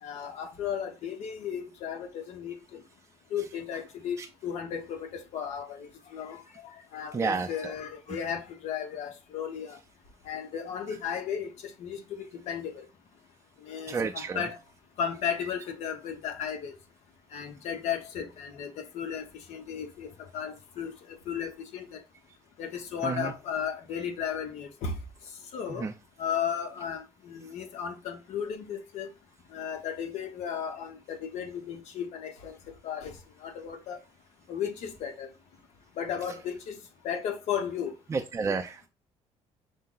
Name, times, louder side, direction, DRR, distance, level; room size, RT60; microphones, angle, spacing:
voice 1, 0.0-2.8 3.3-9.8 10.2-12.9 13.6-14.6 15.0-16.8 17.3-20.1 20.3-22.0 22.6-24.9 25.5-25.9 26.2-29.1 29.5-32.6 32.8-34.0 34.5-35.3 36.0-36.8 37.0-37.9, left 8 dB, 75° left, 1.0 m, -35 dB
voice 2, 7.1-7.7 13.9-14.5 23.0-23.3 25.8-25.9 38.1-38.9, right 4 dB, 25° right, 0.4 m, -31 dB
5.4 x 2.1 x 3.8 m
cardioid pair, 115°, 12 cm